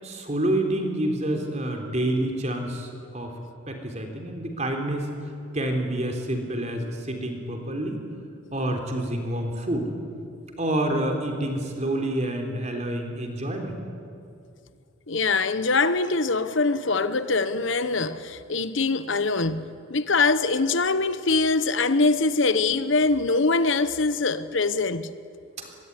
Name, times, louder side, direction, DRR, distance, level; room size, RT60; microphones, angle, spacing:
voice 1, 0.0-3.4 3.7-5.1 5.5-8.0 8.5-9.9 10.6-13.8, right 1 dB, 35° right, 3.7 m, -28 dB
voice 2, 15.1-25.1, left 3 dB, 65° left, 1.0 m, -23 dB
24.0 x 22.0 x 9.9 m
head